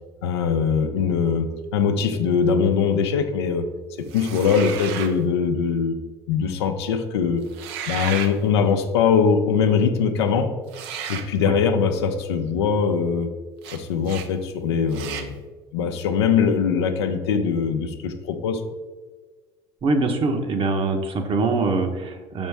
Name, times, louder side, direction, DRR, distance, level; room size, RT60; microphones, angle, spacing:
voice 1, 0.2-3.6 4.1-6.0 6.3-7.5 7.9-10.5 11.1-13.3 13.7-15.4 15.7-18.6, left 6 dB, 85° left, 6 dB, 0.6 m, -22 dB
sound 1, 4.1-5.2 7.5-8.3 10.7-11.3 13.6-13.8 14.0-14.3 14.9-15.3, right 8 dB, 75° right, 0.6 m, -33 dB
voice 2, 19.8-22.5, right 3 dB, 40° right, 5 dB, 1.0 m, -23 dB
6.1 x 5.3 x 3.4 m, 1.4 s
hypercardioid pair, 75°, 14 cm